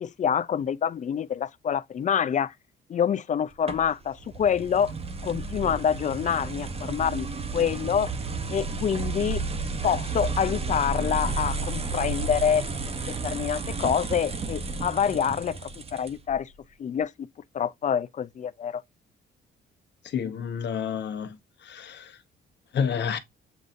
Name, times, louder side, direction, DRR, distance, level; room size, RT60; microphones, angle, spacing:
voice 1, 0.0-2.5 2.9-4.9 5.2-7.3 7.5-8.1 8.5-9.4 9.8-12.6 13.2-16.5 16.8-17.1 17.5-18.8, left 8 dB, 40° left, 0.4 m, -26 dB
sound 1, 3.7-16.4, right 3 dB, 30° right, 0.8 m, -32 dB
voice 2, 20.1-21.4 21.6-22.1 22.7-23.2, left 7 dB, 60° left, 1.0 m, -29 dB
7.9 x 2.7 x 2.4 m
cardioid pair, 90°, 20 cm